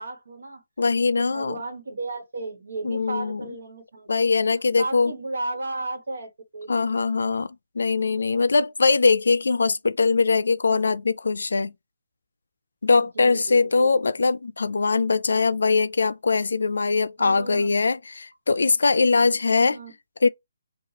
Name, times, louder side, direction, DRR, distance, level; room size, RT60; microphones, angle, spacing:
voice 1, 0.0-0.6 1.1-4.2 4.5-7.4 13.0-14.3 17.2-17.8 19.5-19.9, right 2 dB, 85° right, 1.2 m, -35 dB
voice 2, 0.8-1.5 2.8-3.4 4.1-5.1 6.7-7.5 7.8-11.7 12.8-19.8 20.2-20.3, left 4 dB, 85° left, 0.3 m, -21 dB
4.0 x 2.3 x 2.9 m
hypercardioid pair, 165°, 0 cm